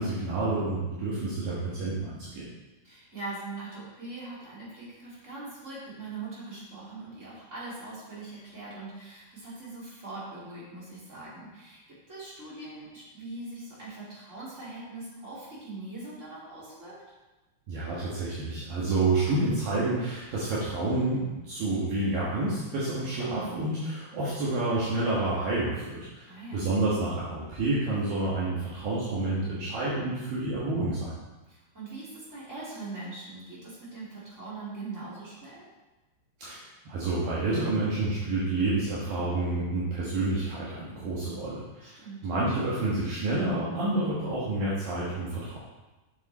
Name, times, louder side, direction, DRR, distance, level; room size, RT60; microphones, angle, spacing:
voice 1, 0.0-2.5 17.7-31.2 36.4-45.6, right 2 dB, 65° right, -8 dB, 3.0 m, -29 dB
voice 2, 2.8-17.0 26.2-26.7 31.5-35.7 41.8-42.3, right 3 dB, 20° right, -8 dB, 2.7 m, -41 dB
8.2 x 6.8 x 4.2 m, 1.1 s
omnidirectional pair, 4.6 m